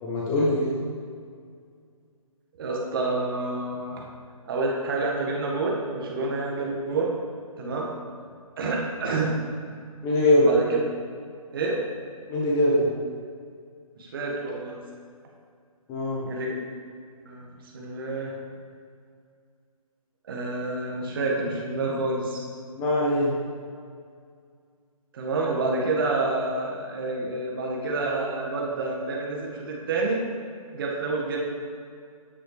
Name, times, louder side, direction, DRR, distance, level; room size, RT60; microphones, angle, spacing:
voice 1, 0.0-0.7 10.0-10.5 12.3-12.9 15.9-16.3 22.7-23.4, left 1 dB, 15° left, -5 dB, 0.8 m, -22 dB
voice 2, 2.6-4.0 4.4-7.1 7.6-7.9 8.6-9.3 10.4-10.8 11.5-11.8 14.0-14.8 16.2-16.5 17.2-17.5 17.7-18.3 20.3-22.4 25.1-30.2 30.7-31.4, right 3 dB, 40° right, -2 dB, 1.7 m, -28 dB
9.9 x 8.0 x 3.3 m, 2.2 s
figure-of-eight pair, 145°, 19 cm